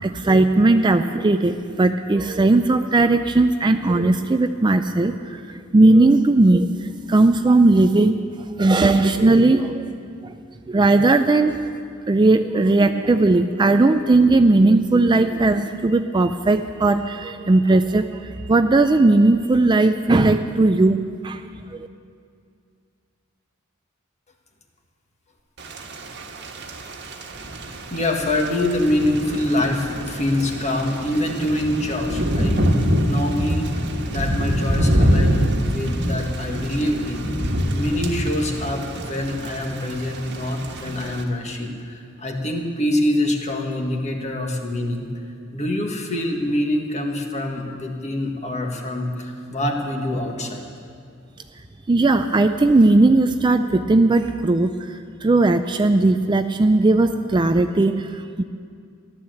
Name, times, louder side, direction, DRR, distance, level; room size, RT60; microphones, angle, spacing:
voice 1, 0.0-6.7 7.1-8.2 8.6-9.8 10.2-10.3 10.7-11.6 12.1-21.0 21.2-21.4 51.9-58.4, right 2 dB, 20° right, 8 dB, 0.4 m, -17 dB
Thunder / Rain, 25.6-41.2, equal, 55° right, 1.4 m, -25 dB
voice 2, 27.6-32.6 33.0-33.7 34.1-37.3 37.7-45.0 45.5-50.6, left 1 dB, 35° left, 2 dB, 1.7 m, -25 dB
14.5 x 11.5 x 7.8 m, 2.3 s
head